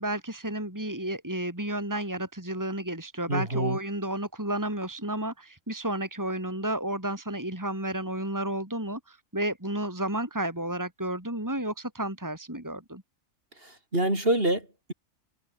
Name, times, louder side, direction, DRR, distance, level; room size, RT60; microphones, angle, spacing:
voice 1, 0.0-13.0, right 1 dB, 15° right, 3.7 m, -32 dB
voice 2, 3.3-3.8 13.6-14.9, right 1 dB, 40° right, 6.5 m, -27 dB
omnidirectional pair, 1.4 m